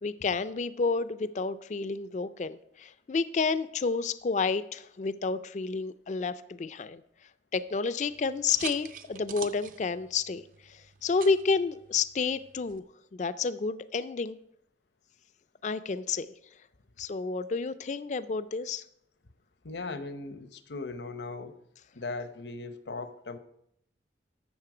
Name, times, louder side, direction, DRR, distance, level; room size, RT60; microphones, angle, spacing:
voice 1, 0.0-7.0 7.5-12.8 13.1-14.4 15.6-16.3 17.0-18.8, left 4 dB, 40° left, 14 dB, 0.4 m, -30 dB
sound 1, 8.1-12.8, right 8 dB, 45° right, 0.6 m, -46 dB
voice 2, 19.6-21.6 21.9-23.4, left 3 dB, 75° left, 10 dB, 0.9 m, -38 dB
12.5 x 7.3 x 4.9 m, 0.74 s
head